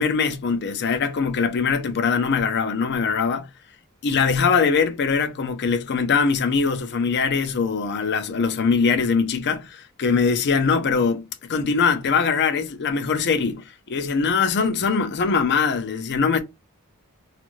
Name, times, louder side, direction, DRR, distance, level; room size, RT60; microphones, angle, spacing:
voice 1, 0.0-3.5 4.0-11.2 11.5-16.4, left 5 dB, 50° left, 0.5 m, -22 dB
2.6 x 2.4 x 2.9 m
head